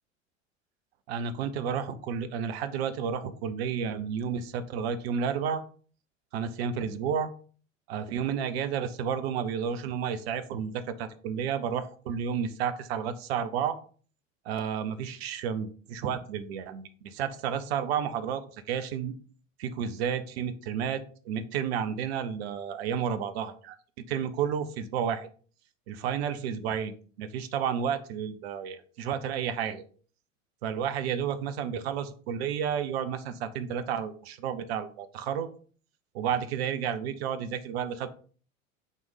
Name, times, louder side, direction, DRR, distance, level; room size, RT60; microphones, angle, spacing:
voice 1, 1.1-5.6 6.3-7.3 7.9-13.8 14.4-18.4 18.7-19.1 19.6-23.8 24.1-25.3 25.9-29.8 30.6-35.5 36.1-38.1, right 7 dB, 55° right, 11 dB, 0.9 m, -31 dB
6.4 x 3.5 x 5.5 m, 0.42 s
figure-of-eight pair, 80°, 38 cm